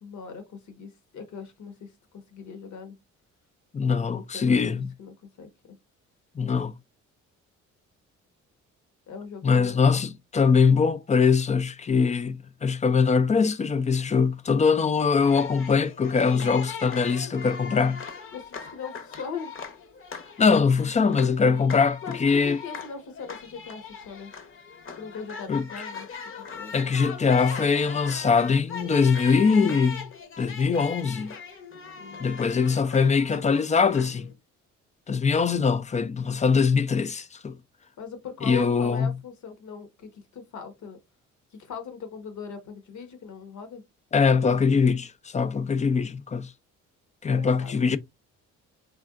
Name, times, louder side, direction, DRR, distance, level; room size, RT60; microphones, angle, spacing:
voice 1, 0.0-3.0 4.1-5.5 9.1-10.0 16.3-16.6 18.3-19.5 22.0-24.3 25.0-26.1 26.5-26.7 32.0-32.2 38.0-41.0 41.5-43.8 45.8-45.9 47.3-47.7, left 6 dB, 70° left, 1.2 m, -40 dB
voice 2, 3.7-4.9 6.4-6.7 9.4-18.1 20.4-22.6 25.5-25.7 26.7-30.1 30.4-31.3 32.2-34.3 35.1-37.6 38.4-39.1 44.1-46.5 47.2-48.0, left 5 dB, 25° left, 0.4 m, -22 dB
sound 1, 15.2-34.3, left 5 dB, 45° left, 0.9 m, -40 dB
3.6 x 3.4 x 2.4 m
cardioid pair, 90°, 30 cm